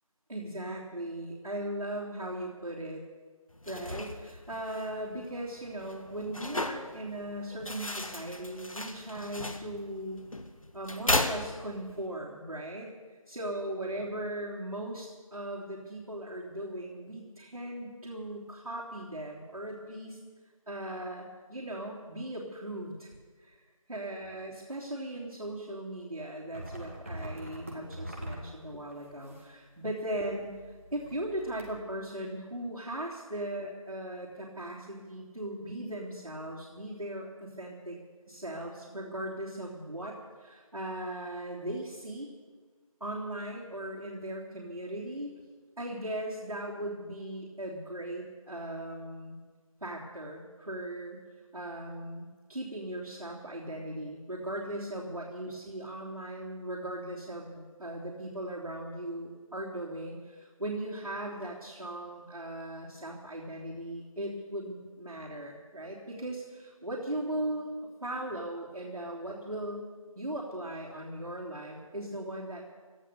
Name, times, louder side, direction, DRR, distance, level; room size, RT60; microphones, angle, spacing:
voice 1, 0.3-3.0 3.6-10.3 10.7-20.2 20.7-23.6 23.9-38.0 38.3-42.3 43.0-45.3 45.8-49.4 49.8-51.2 51.5-67.7 68.0-69.8 70.1-72.6, right 1 dB, 75° right, -6 dB, 3.4 m, -38 dB
sound 1, 3.5-12.1, left 2 dB, 65° left, 1.6 m, -36 dB
sound 2, 26.5-29.6 30.0-31.8, right 1 dB, 20° right, 1.8 m, -44 dB
17.0 x 12.5 x 6.9 m, 1.5 s
figure-of-eight pair, 175°, 19 cm